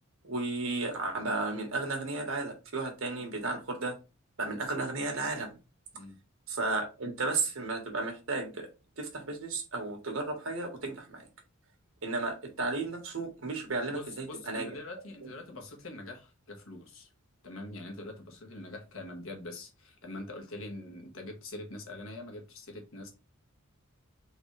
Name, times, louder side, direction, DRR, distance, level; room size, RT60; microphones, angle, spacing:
voice 1, 0.2-3.9 4.4-5.6 6.5-8.7 9.0-11.2 12.0-14.7, right 3 dB, 80° right, 1.4 m, -33 dB
voice 2, 13.9-17.1 17.4-23.1, left 2 dB, 75° left, 1.3 m, -44 dB
3.9 x 3.5 x 3.2 m
head